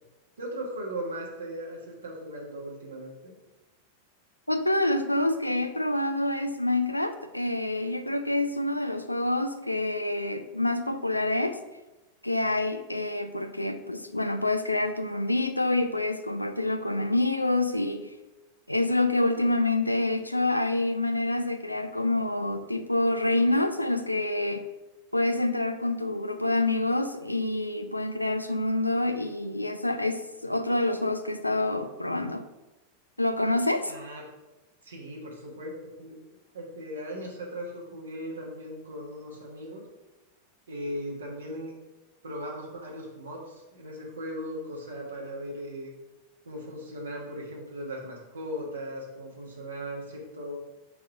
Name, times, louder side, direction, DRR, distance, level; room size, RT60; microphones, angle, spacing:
voice 1, 0.4-3.4 33.9-34.2 34.8-35.7 36.0-36.1 36.5-39.9 40.7-41.7 42.2-45.9 46.4-50.6, equal, 70° right, -2 dB, 1.3 m, -38 dB
voice 2, 4.5-11.6 12.2-18.1 18.7-24.6 25.1-32.5 33.2-33.9, left 2 dB, 85° left, 8 dB, 0.4 m, -27 dB
4.7 x 4.3 x 5.8 m, 1.0 s
figure-of-eight pair, 90°, 0 cm